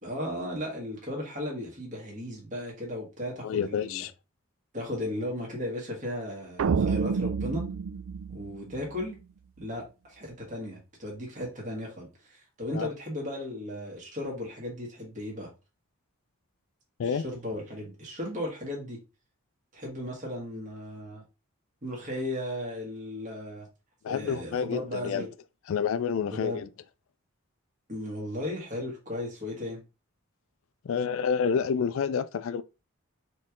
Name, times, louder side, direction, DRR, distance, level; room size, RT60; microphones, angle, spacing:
voice 1, 0.0-4.0 4.7-7.7 8.3-9.2 9.6-15.5 17.1-19.0 19.7-21.2 21.8-23.7 24.1-25.3 26.2-26.6 27.9-29.8, left 1 dB, 35° right, 1.6 m, -36 dB
voice 2, 3.4-4.1 12.7-12.9 17.0-17.2 24.0-25.3 25.7-26.7 30.8-32.6, left 6 dB, 65° left, 0.3 m, -29 dB
sound 1, 6.6-9.1, right 5 dB, 65° right, 0.3 m, -29 dB
4.3 x 3.1 x 3.6 m
head